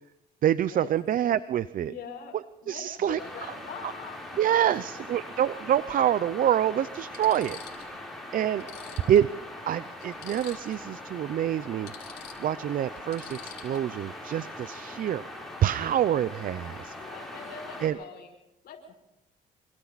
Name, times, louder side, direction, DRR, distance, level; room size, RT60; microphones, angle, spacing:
voice 1, 0.4-1.9 2.7-3.2 4.4-7.6 7.9-8.7 9.1-9.3 9.7-11.9 12.4-15.2 15.6-16.9 17.8-17.9, right 10 dB, 60° right, 16 dB, 0.7 m, -26 dB
voice 2, 1.8-4.4 4.8-5.0 8.6-9.1 17.0-18.3 18.6-18.9, left 6 dB, 70° left, -2 dB, 6.1 m, -44 dB
sound 1, 3.2-17.9, left 1 dB, ahead, 7.9 m, -42 dB
sound 2, 4.3-4.4 5.7-5.8 6.5-6.6 7.0-8.0 8.3-8.4 8.6-10.9 11.2-11.3 11.6-14.0 16.6-16.9 17.1-17.6, left 10 dB, 90° left, 4.8 m, -48 dB
27.5 x 26.0 x 4.2 m, 0.88 s
cardioid pair, 100°, 16 cm